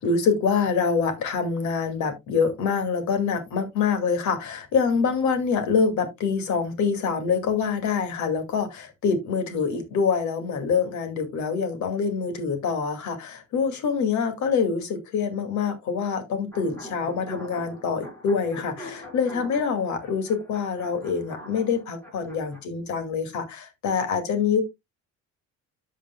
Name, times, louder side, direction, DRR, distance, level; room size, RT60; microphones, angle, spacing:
voice 1, 0.0-24.6, left 5 dB, 75° left, 2.2 m, -25 dB
sound 1, 16.5-22.6, equal, 10° left, 4.7 m, -43 dB
13.5 x 5.0 x 2.2 m
cardioid pair, 110°, 30 cm